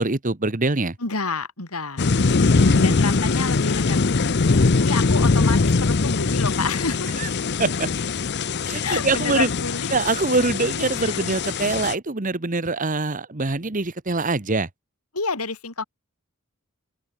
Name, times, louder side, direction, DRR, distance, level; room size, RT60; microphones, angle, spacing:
voice 1, 0.0-1.0 2.5-2.9 7.2-7.3 7.6-7.9 8.6-9.5 9.9-14.7, right 3 dB, 35° right, 1.3 m, -24 dB
voice 2, 1.0-2.1 2.8-4.0 4.8-7.1 8.8-9.9 11.0-11.3 15.1-15.8, left 4 dB, 80° left, 4.0 m, -29 dB
sound 1, 2.0-11.9, left 4 dB, 50° left, 0.7 m, -21 dB
open air
head